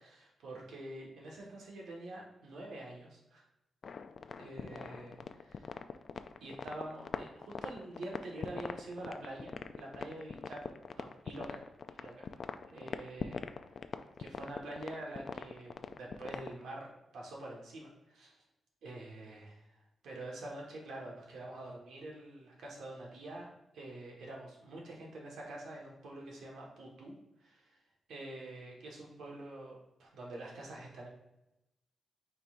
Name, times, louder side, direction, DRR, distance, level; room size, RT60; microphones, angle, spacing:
voice 1, 0.0-3.4 4.4-5.7 6.4-11.6 11.9-12.4 12.7-13.4 14.2-18.3 18.8-19.8 20.0-23.5 23.7-27.1 27.4-27.8 28.1-31.1, right 1 dB, 90° right, -2 dB, 1.5 m, -46 dB
sound 1, 3.8-16.6, left 5 dB, 45° left, 0.3 m, -42 dB
9.0 x 4.4 x 2.6 m, 0.92 s
wide cardioid pair, 160°, 0 cm